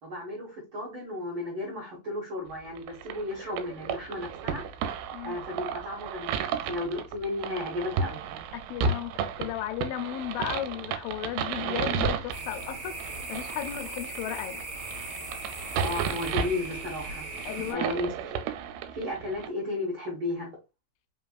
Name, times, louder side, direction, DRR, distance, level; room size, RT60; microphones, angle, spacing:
voice 1, 0.0-4.6 5.2-8.2 15.8-17.3 17.7-18.3 18.9-20.5, left 2 dB, 60° right, 1.4 m, -34 dB
sound 1, 2.8-19.5, right 6 dB, 85° right, 2.5 m, -33 dB
voice 2, 8.7-14.6 17.5-17.9, left 11 dB, 80° left, 2.2 m, -35 dB
sound 2, 12.3-17.7, right 2 dB, 40° right, 1.4 m, -38 dB
5.2 x 3.4 x 2.3 m
omnidirectional pair, 4.3 m